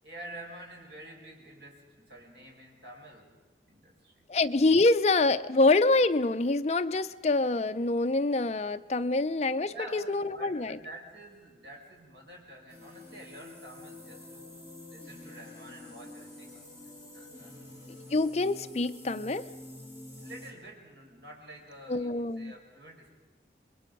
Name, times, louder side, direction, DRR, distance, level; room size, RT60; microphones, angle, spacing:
voice 1, 0.0-3.3 3.7-4.2 9.6-16.7 17.1-17.5 20.2-23.1, right 1 dB, 75° right, 0 dB, 5.3 m, -48 dB
voice 2, 4.3-10.8 17.9-19.5 21.9-22.5, left 2 dB, 35° left, 10 dB, 0.6 m, -26 dB
sound 1, 12.7-20.5, left 1 dB, 15° right, 3.2 m, -47 dB
26.5 x 22.0 x 5.3 m, 1.3 s
head